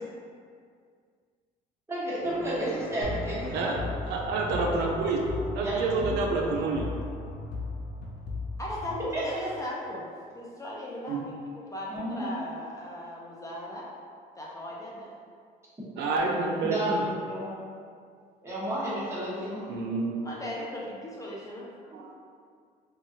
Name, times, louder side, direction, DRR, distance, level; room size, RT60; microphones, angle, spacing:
voice 1, 1.9-3.7 5.6-6.2 9.1-9.7 11.9-12.3 16.6-17.6 18.4-19.7 21.9-22.0, right 1 dB, 15° right, -9 dB, 1.0 m, -32 dB
sound 1, 2.2-8.3, equal, 60° left, 0.9 m, -42 dB
sound 2, 3.0-9.6, left 3 dB, 80° left, 0.5 m, -37 dB
voice 2, 4.0-5.2 5.5-6.9 11.1-11.2 16.0-17.0 19.7-20.1 21.9-22.1, right 3 dB, 80° right, 0 dB, 0.4 m, -28 dB
voice 3, 8.6-10.1 10.3-13.9 14.4-15.1 16.0-16.5 20.2-21.7, left 1 dB, 20° left, -4 dB, 0.4 m, -38 dB
3.1 x 2.3 x 2.7 m, 2.1 s
cardioid pair, 110°, 17 cm